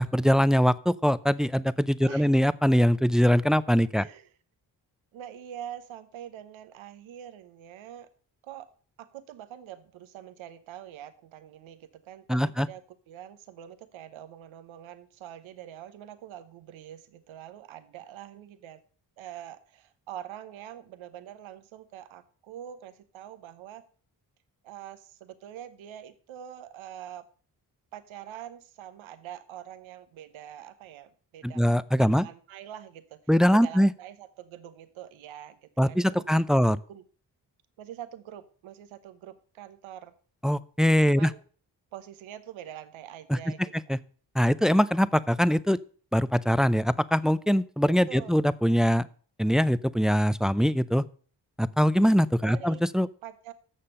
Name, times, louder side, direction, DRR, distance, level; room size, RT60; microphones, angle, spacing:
voice 1, 0.0-4.0 12.3-12.7 31.4-32.3 33.3-33.9 35.8-36.8 40.4-41.3 43.3-43.4 43.9-44.0 44.4-45.8 46.1-49.1 49.4-51.0 51.6-53.1, equal, ahead, 17 dB, 0.4 m, -22 dB
voice 2, 2.0-2.4 4.0-4.3 5.1-8.1 8.4-8.7 9.0-12.8 13.1-18.8 19.2-23.8 24.6-27.2 27.9-31.6 32.0-33.2 33.5-36.3 36.5-37.0 37.8-40.1 41.1-41.4 41.9-43.7 45.1-45.2 48.1-48.4 52.4-52.8 53.2-53.5, right 11 dB, 80° right, 11 dB, 1.0 m, -44 dB
7.7 x 6.7 x 6.6 m, 0.42 s
supercardioid pair, 40°, 46 cm